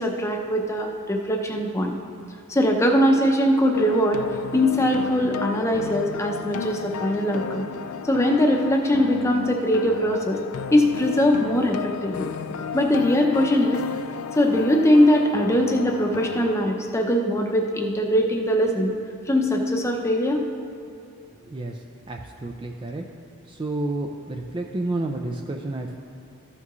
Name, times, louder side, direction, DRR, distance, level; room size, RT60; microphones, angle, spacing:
voice 1, 0.0-2.0 2.5-4.2 4.5-7.7 8.0-10.4 10.7-11.8 12.0-12.3 12.7-13.8 14.4-18.9 19.3-20.4, equal, 15° left, 2 dB, 0.7 m, -21 dB
sound 1, 3.7-16.5, left 6 dB, 75° left, 0.4 m, -33 dB
voice 2, 22.1-23.0 23.5-26.0, right 2 dB, 20° right, 2 dB, 0.4 m, -30 dB
14.0 x 5.9 x 3.1 m, 2.6 s
head